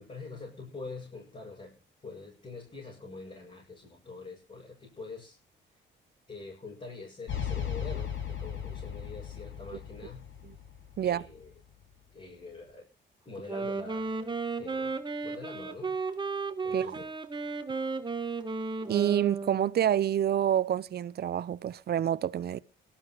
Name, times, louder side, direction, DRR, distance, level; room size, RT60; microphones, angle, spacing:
voice 1, 0.0-5.4 6.3-10.3 11.0-11.5 12.1-12.9 13.3-14.9 15.2-15.9 16.6-17.1, left 3 dB, 30° left, 7.3 m, -45 dB
sound 1, 7.3-11.5, left 8 dB, 70° left, 6.0 m, -37 dB
Wind instrument woodwind instrument, 13.4-19.9, right 4 dB, 25° right, 1.6 m, -34 dB
voice 2, 18.9-22.6, right 10 dB, 55° right, 0.8 m, -27 dB
22.5 x 13.5 x 3.0 m
cardioid pair, 90°, 20 cm